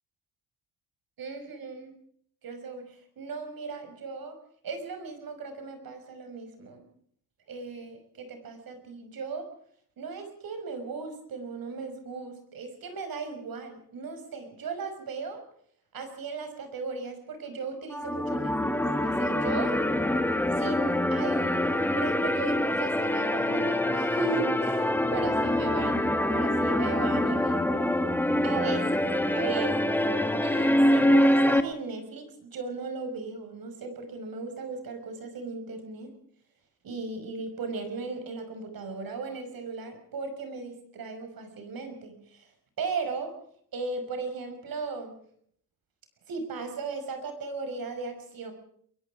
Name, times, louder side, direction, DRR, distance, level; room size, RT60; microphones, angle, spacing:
voice 1, 1.2-2.0 2.4-4.4 4.6-6.8 7.5-9.5 10.0-15.4 15.9-18.8 19.0-19.8 20.5-27.6 28.4-30.0 30.4-36.1 36.8-42.5 42.8-43.3 43.7-45.1 46.3-48.5, right 4 dB, 70° right, 7 dB, 5.8 m, -37 dB
sound 1, 17.9-31.6, left 1 dB, 5° left, 1.2 m, -25 dB
23.5 x 22.5 x 5.0 m, 0.62 s
wide cardioid pair, 165°, 36 cm